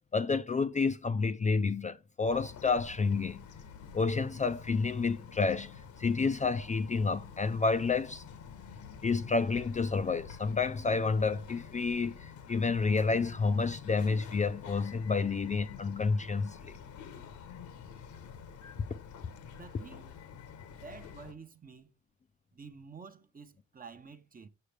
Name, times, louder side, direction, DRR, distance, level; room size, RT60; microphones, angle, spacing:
voice 1, 0.1-3.4 3.9-5.7 6.0-8.2 9.0-16.8, left 4 dB, 25° left, 0.4 m, -29 dB
Bird vocalization bird call bird song, 2.3-21.3, left 7 dB, 75° left, 1.1 m, -48 dB
voice 2, 19.5-20.1 20.6-21.9 22.5-24.5, right 5 dB, 30° right, 0.8 m, -50 dB
6.6 x 5.7 x 3.3 m
cardioid pair, 90°, 30 cm